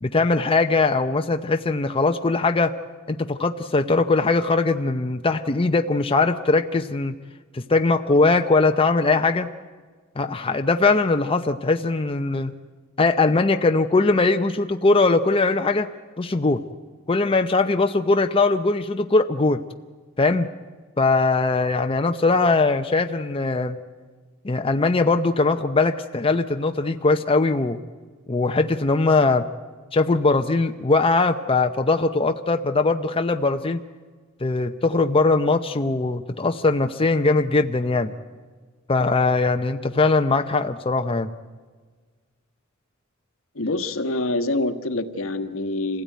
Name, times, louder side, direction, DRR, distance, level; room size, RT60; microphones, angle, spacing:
voice 1, 0.0-2.7 3.1-7.1 7.5-9.5 10.2-12.5 13.0-15.9 16.2-16.6 17.1-19.6 20.2-20.5 21.0-23.8 24.4-27.8 28.3-29.5 29.9-33.8 34.4-38.1 38.9-41.3, left 3 dB, 25° left, 6 dB, 0.7 m, -20 dB
voice 2, 43.6-46.0, left 2 dB, 70° left, 7 dB, 1.4 m, -26 dB
26.0 x 16.5 x 9.3 m, 1.5 s
head